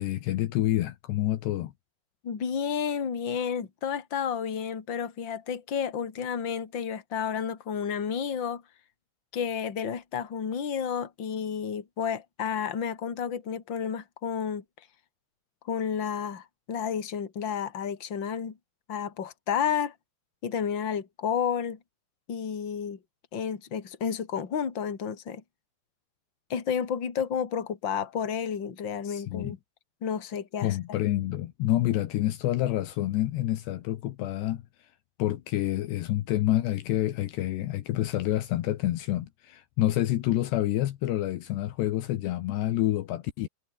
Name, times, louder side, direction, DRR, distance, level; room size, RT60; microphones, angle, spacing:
voice 1, 0.0-1.7 29.0-29.6 30.6-34.6 35.2-43.5, left 14 dB, 75° left, 3.2 m, -28 dB
voice 2, 2.2-8.6 9.3-14.6 15.7-18.6 18.9-19.9 20.4-21.8 22.3-23.0 23.3-25.4 26.5-29.6 30.0-30.8, left 7 dB, 30° left, 2.8 m, -31 dB
omnidirectional pair, 5.3 m